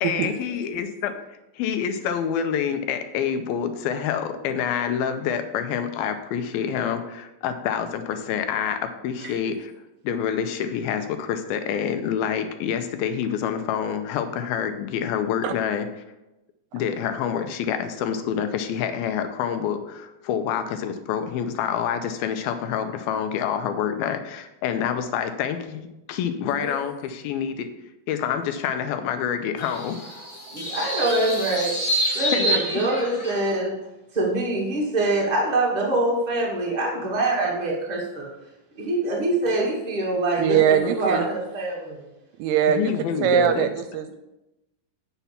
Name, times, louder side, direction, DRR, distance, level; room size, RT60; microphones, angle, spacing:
voice 1, 0.0-1.2 1.5-9.7 10.0-15.9 16.7-27.7 28.1-30.0 32.3-32.6 42.7-43.7, left 8 dB, 80° left, 8 dB, 2.4 m, -27 dB
sound 1, 29.6-33.6, equal, 15° left, 2.5 m, -28 dB
voice 2, 30.5-31.8 32.1-33.7 34.1-38.3 38.7-42.1, right 2 dB, 35° right, -2 dB, 0.6 m, -24 dB
voice 3, 40.4-41.3 42.4-42.9 43.2-44.2, right 8 dB, 80° right, 9 dB, 2.4 m, -21 dB
8.3 x 5.8 x 7.0 m, 0.95 s
omnidirectional pair, 4.7 m